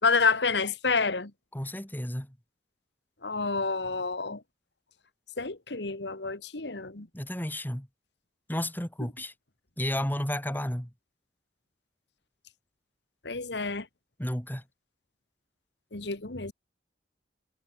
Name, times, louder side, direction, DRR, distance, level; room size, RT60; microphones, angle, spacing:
voice 1, 0.0-1.3 3.2-4.4 5.4-7.1 13.2-13.9 15.9-16.5, left 4 dB, 70° left, 1.9 m, -28 dB
voice 2, 1.5-2.3 7.1-7.9 8.5-9.3 9.8-10.9 14.2-14.6, left 1 dB, 10° left, 3.1 m, -32 dB
head